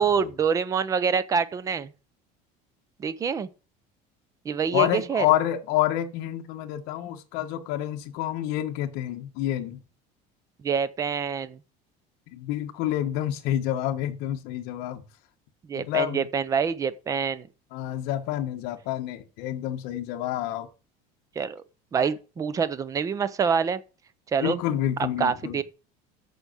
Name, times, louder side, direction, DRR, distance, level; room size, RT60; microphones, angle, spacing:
voice 1, 0.0-1.9 3.0-3.5 4.4-5.3 10.6-11.6 15.7-17.5 21.4-21.6 21.9-23.8 24.3-24.6 25.2-25.6, right 6 dB, 20° right, 0.6 m, -26 dB
voice 2, 4.7-9.8 12.3-15.0 15.7-16.2 17.7-20.7 24.4-25.6, left 12 dB, 60° left, 1.6 m, -28 dB
8.2 x 6.9 x 7.5 m
cardioid pair, 175°, 18 cm